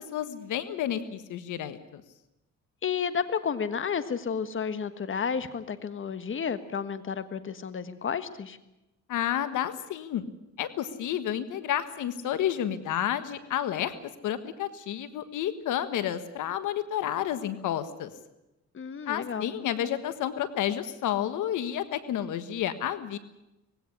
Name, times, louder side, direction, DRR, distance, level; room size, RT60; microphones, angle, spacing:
voice 1, 0.0-2.0 9.1-10.2 10.6-13.9 14.2-18.1 19.1-23.2, left 10 dB, 80° left, 12 dB, 1.5 m, -30 dB
voice 2, 2.8-8.6 18.7-19.5, left 6 dB, 40° left, 12 dB, 1.6 m, -31 dB
20.0 x 17.0 x 9.9 m, 0.93 s
cardioid pair, 90°, 30 cm